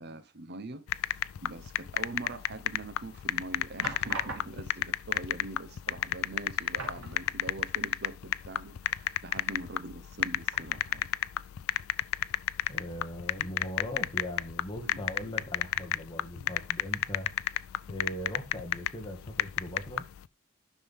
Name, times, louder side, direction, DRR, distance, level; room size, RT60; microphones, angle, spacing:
voice 1, 0.0-11.1 14.8-15.0 16.4-16.5, right 2 dB, 55° right, 0.9 m, -43 dB
sound 1, 0.9-20.2, left 11 dB, 90° left, 0.4 m, -32 dB
sound 2, 2.6-3.0 3.8-4.9 5.8-5.9 6.2-6.4 6.7-7.7 8.1-8.2 10.5-11.2 11.7-11.8, right 3 dB, 80° right, 2.7 m, -43 dB
voice 2, 12.7-17.3 17.9-20.1, equal, 25° left, 2.0 m, -40 dB
10.0 x 6.2 x 3.6 m
head